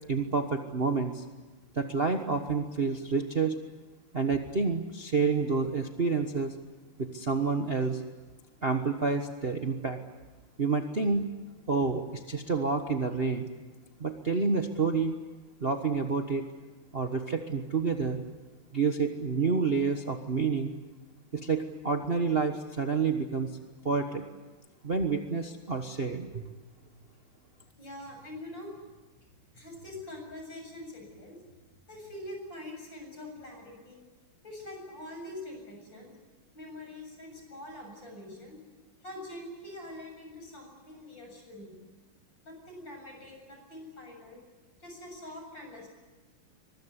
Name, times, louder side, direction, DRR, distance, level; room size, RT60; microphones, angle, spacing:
voice 1, 0.1-1.2 1.7-3.6 4.1-6.5 7.0-8.0 8.6-10.0 10.6-11.3 11.7-13.5 14.0-15.1 15.6-16.4 16.9-18.2 18.7-20.7 21.3-23.5 23.8-24.2 24.8-26.4, right 4 dB, 30° right, 4 dB, 1.2 m, -28 dB
voice 2, 27.8-28.7 29.5-31.4 31.9-34.0 34.4-36.1 36.5-38.6 39.0-41.7 42.4-44.4 44.8-45.9, left 1 dB, 55° left, 2 dB, 8.3 m, -44 dB
24.0 x 21.0 x 9.9 m, 1.2 s
omnidirectional pair, 2.4 m